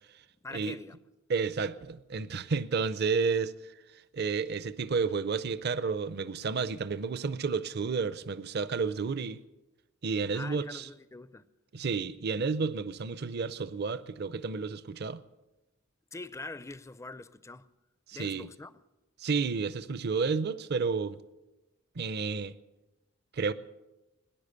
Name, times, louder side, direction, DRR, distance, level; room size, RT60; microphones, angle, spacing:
voice 1, 0.4-1.0 10.3-11.5 16.1-17.7 18.1-18.8, left 2 dB, 15° left, 0.4 m, -44 dB
voice 2, 1.3-3.5 4.1-9.4 10.0-10.9 11.7-15.2 18.1-18.5 19.2-21.2 22.0-22.5 23.3-23.5, right 5 dB, 50° right, 0.5 m, -31 dB
18.5 x 10.5 x 6.7 m
head